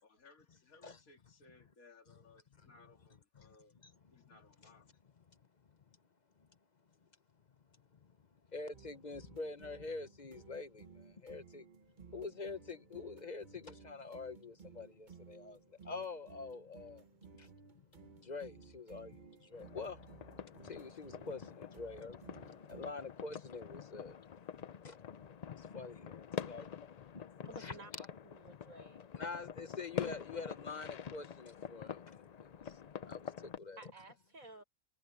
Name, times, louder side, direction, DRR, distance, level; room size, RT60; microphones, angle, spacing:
voice 1, 0.0-3.8 4.1-4.9, left 3 dB, 90° left, 2.6 m, -63 dB
voice 2, 3.8-4.4 5.3-5.4 5.7-5.8 6.4-6.5 7.9-8.2 8.5-11.7 12.1-17.0 17.4-17.5 17.7-20.2 20.6-22.2 22.7-24.2 24.6-27.7 29.2-33.9, left 4 dB, 40° left, 0.8 m, -46 dB
sound 1, 8.7-22.9, right 5 dB, 40° right, 1.1 m, -58 dB
sound 2, 19.5-33.6, left 8 dB, 65° left, 0.4 m, -46 dB
voice 3, 27.4-27.9 28.2-29.1 33.8-34.6, right 3 dB, 75° right, 6.3 m, -54 dB
omnidirectional pair, 1.4 m